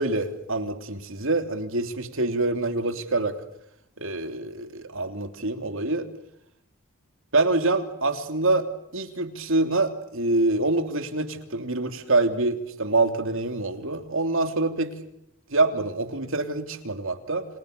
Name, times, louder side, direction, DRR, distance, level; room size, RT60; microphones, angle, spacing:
voice 1, 0.0-3.4 4.0-6.1 7.3-8.7 8.9-15.0 15.5-17.5, right 2 dB, 60° right, 8 dB, 3.1 m, -25 dB
29.5 x 28.5 x 6.8 m, 0.79 s
head